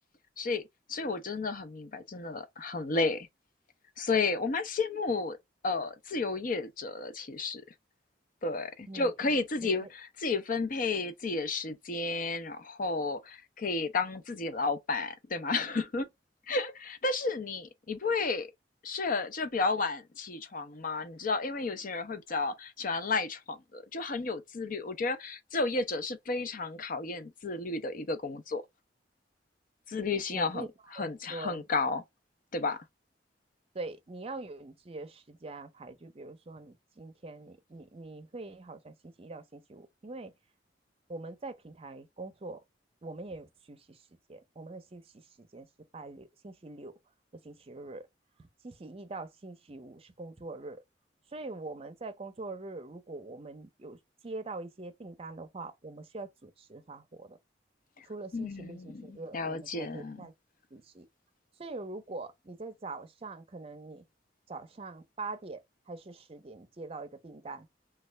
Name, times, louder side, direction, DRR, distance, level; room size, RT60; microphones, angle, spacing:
voice 1, 0.9-3.3 4.0-5.4 5.6-7.6 8.4-16.1 16.5-18.5 18.8-28.6 29.9-32.0 32.5-32.8 58.0-58.1 58.3-60.3, left 3 dB, 50° left, 0.6 m, -32 dB
voice 2, 8.9-9.3 9.6-9.9 30.3-30.7 31.0-31.6 33.7-40.3 41.1-42.6 43.0-44.0 44.3-45.0 45.4-45.7 45.9-46.9 47.4-48.1 48.4-50.8 51.3-57.4 58.0-60.3 60.7-61.1 61.6-64.0 64.5-67.7, right 3 dB, 35° right, 0.6 m, -43 dB
3.2 x 2.3 x 3.2 m
head